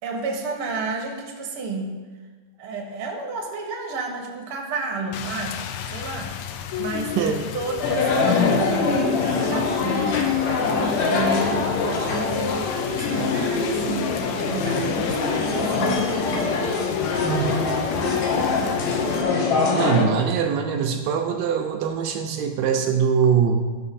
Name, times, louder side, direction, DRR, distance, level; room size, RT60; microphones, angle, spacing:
voice 1, 0.0-2.0 2.6-6.4 6.8-10.7 11.0-17.0 17.8-18.8 19.4-20.1, right 3 dB, 60° right, 1 dB, 1.4 m, -31 dB
Rain, 5.1-19.2, left 9 dB, 85° left, 2.5 m, -32 dB
sound 1, 7.8-20.1, left 4 dB, 65° left, 1.9 m, -24 dB
sound 2, 10.4-12.5 15.4-18.3, left 1 dB, 45° left, 2.3 m, -38 dB
voice 2, 17.2-17.8 19.7-23.6, right 7 dB, 80° right, 4 dB, 2.0 m, -22 dB
15.0 x 6.3 x 4.2 m, 1.4 s
omnidirectional pair, 4.5 m